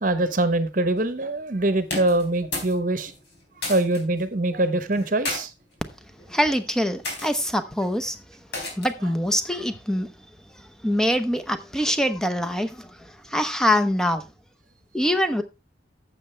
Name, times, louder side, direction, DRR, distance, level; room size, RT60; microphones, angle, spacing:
voice 1, 0.0-3.1 3.7-5.5, right 2 dB, 45° right, 1.0 m, -23 dB
sound 1, 1.8-2.8 3.1-4.0 4.9-5.4 6.2-6.4 7.0-7.3 8.5-9.0, left 2 dB, 65° left, 4.1 m, -32 dB
voice 2, 6.3-8.2 8.8-10.1 10.8-14.2 14.9-15.4, equal, 5° left, 0.8 m, -24 dB
11.5 x 7.7 x 3.3 m
head